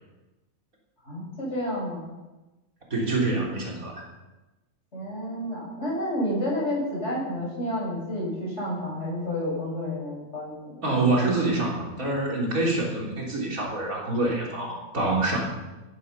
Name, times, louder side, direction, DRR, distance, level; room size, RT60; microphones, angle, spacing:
voice 1, 1.1-2.0 4.9-11.1, left 1 dB, 55° left, -4 dB, 7.7 m, -30 dB
voice 2, 2.9-4.1 10.8-15.4, right 2 dB, 80° right, -2 dB, 4.2 m, -26 dB
15.5 x 13.5 x 5.6 m, 1.1 s
omnidirectional pair, 1.4 m